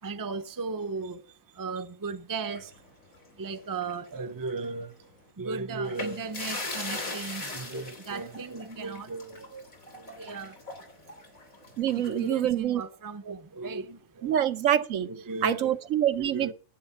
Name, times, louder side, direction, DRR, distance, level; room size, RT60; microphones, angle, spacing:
voice 1, 0.0-2.8 3.3-10.6 11.0-11.1 11.9-14.3 15.1-15.8 16.2-16.5, right 4 dB, 20° right, 0.6 m, -36 dB
sound 1, 2.5-4.1 4.4-4.6 5.8-12.3, left 2 dB, 85° left, 3.5 m, -40 dB
voice 2, 11.8-12.8 13.3-13.4 14.2-15.1 15.4-16.5, right 10 dB, 75° right, 1.1 m, -26 dB
10.5 x 8.2 x 5.7 m
omnidirectional pair, 1.4 m